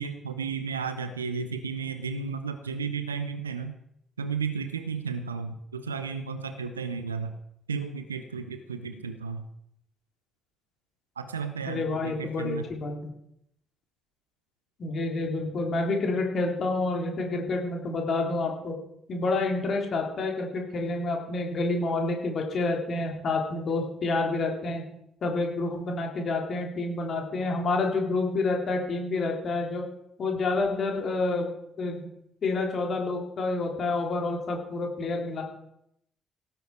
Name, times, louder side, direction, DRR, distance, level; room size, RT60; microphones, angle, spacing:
voice 1, 0.0-3.7 4.2-7.4 7.7-9.5 11.2-12.7, right 5 dB, 85° right, 9 dB, 0.7 m, -33 dB
voice 2, 11.7-12.9 14.8-18.8 19.1-24.8 25.2-29.9 30.2-31.5 31.8-32.1 32.4-35.4, left 3 dB, 50° left, 1 dB, 3.4 m, -28 dB
17.0 x 9.2 x 4.6 m, 0.77 s
figure-of-eight pair, 40°, 0 cm